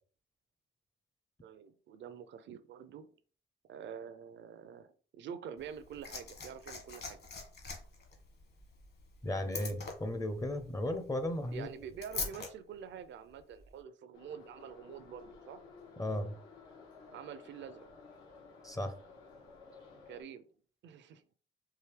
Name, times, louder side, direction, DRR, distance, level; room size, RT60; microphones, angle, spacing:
voice 1, 1.4-3.1 3.6-7.2 11.5-15.6 17.1-17.9 20.1-20.5 20.8-21.2, right 8 dB, 65° right, 10 dB, 0.6 m, -47 dB
Liquid, 5.6-12.5 13.6-13.7, left 4 dB, 55° left, 1.5 m, -44 dB
voice 2, 9.2-11.7 16.0-16.4 18.6-18.9, left 1 dB, 15° left, 8 dB, 0.6 m, -35 dB
Subway metro underground, 14.1-20.2, left 4 dB, 85° left, 1.6 m, -55 dB
4.8 x 2.7 x 3.3 m, 0.41 s
cardioid pair, 90°, 20 cm